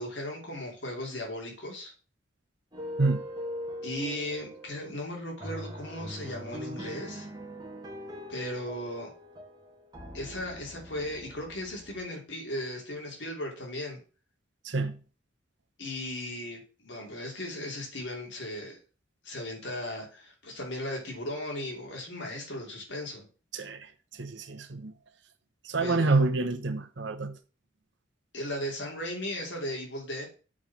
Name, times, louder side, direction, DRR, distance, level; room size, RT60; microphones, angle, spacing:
voice 1, 0.0-1.9 3.8-7.3 8.3-9.1 10.1-14.0 15.8-18.8 19.2-23.3 25.8-26.2 28.3-30.3, left 1 dB, 65° left, 3.0 m, -37 dB
sound 1, 2.7-12.0, equal, 20° right, 1.9 m, -42 dB
voice 2, 14.6-15.0 23.5-24.9 25.6-27.4, right 3 dB, 65° right, 1.0 m, -28 dB
7.3 x 4.7 x 6.1 m
head